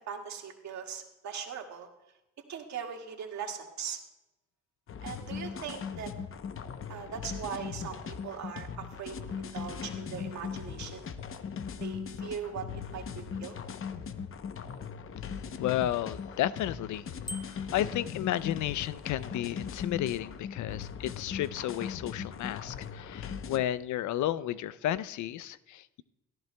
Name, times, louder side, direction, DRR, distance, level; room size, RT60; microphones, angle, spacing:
voice 1, 0.1-1.9 2.5-4.0 5.0-6.1 6.9-11.0 11.8-13.6, right 7 dB, 65° right, 2 dB, 1.9 m, -40 dB
sound 1, 4.9-23.6, left 6 dB, 45° left, 0.8 m, -39 dB
voice 2, 15.6-17.1 17.5-26.0, left 12 dB, 75° left, 17 dB, 0.5 m, -32 dB
Bicycle bell, 17.3-17.9, left 1 dB, 15° left, 0.6 m, -42 dB
17.5 x 14.0 x 2.2 m, 0.95 s
cardioid pair, 90°, 30 cm